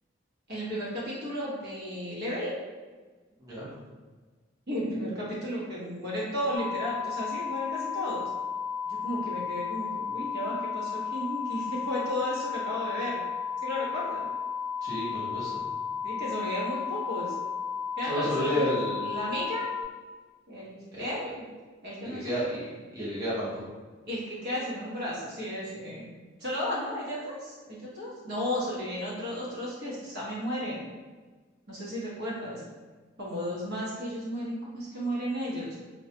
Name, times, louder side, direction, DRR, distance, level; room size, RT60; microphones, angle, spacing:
voice 1, 0.5-2.5 4.7-8.3 8.8-13.2 13.6-14.3 16.0-17.3 18.0-18.7 19.0-19.7 20.5-21.5 21.8-22.3 24.1-30.9 31.7-32.6 33.2-35.8, equal, 55° right, -6 dB, 0.9 m, -34 dB
sound 1, 6.6-19.8, left 6 dB, 90° left, 0.6 m, -33 dB
voice 2, 14.8-15.5 18.0-19.0 20.9-21.1 22.0-22.6 22.9-23.6, equal, 20° right, -9 dB, 0.8 m, -31 dB
2.2 x 2.1 x 2.8 m, 1.3 s
head